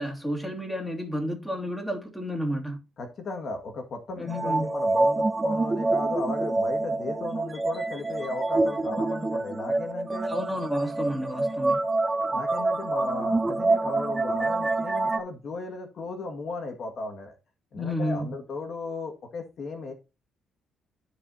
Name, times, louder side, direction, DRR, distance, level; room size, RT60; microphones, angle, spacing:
voice 1, 0.0-2.8 4.2-4.7 10.3-11.8 17.8-18.3, equal, 5° left, 2.6 m, -31 dB
voice 2, 3.0-10.3 12.3-17.3 17.7-19.9, left 3 dB, 55° left, 1.9 m, -35 dB
sound 1, 4.3-15.2, right 2 dB, 25° right, 1.1 m, -26 dB
13.5 x 4.9 x 2.8 m
cardioid pair, 90°, 0 cm